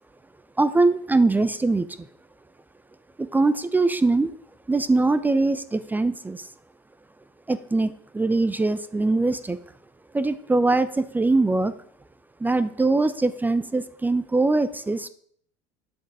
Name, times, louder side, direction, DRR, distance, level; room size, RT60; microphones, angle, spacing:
voice 1, 0.6-1.9 3.2-4.3 4.7-6.5 7.5-9.6 10.1-11.7 12.4-15.1, right 3 dB, 10° right, 13 dB, 0.5 m, -22 dB
8.6 x 6.4 x 4.8 m, 0.63 s
hypercardioid pair, 85°, 14 cm